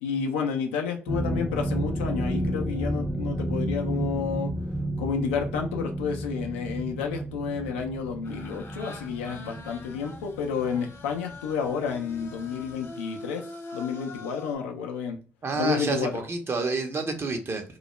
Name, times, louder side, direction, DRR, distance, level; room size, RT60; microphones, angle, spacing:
voice 1, 0.0-4.5 5.0-15.2 15.5-16.2, left 6 dB, 90° left, 0.4 m, -30 dB
sound 1, 1.1-11.8 12.1-12.4 12.8-12.9, right 1 dB, 5° left, 0.5 m, -32 dB
sound 2, 8.2-14.5, left 2 dB, 45° left, 0.7 m, -44 dB
voice 2, 15.4-17.6, right 4 dB, 40° right, 0.7 m, -29 dB
2.2 x 2.0 x 2.9 m
hypercardioid pair, 50°, 6 cm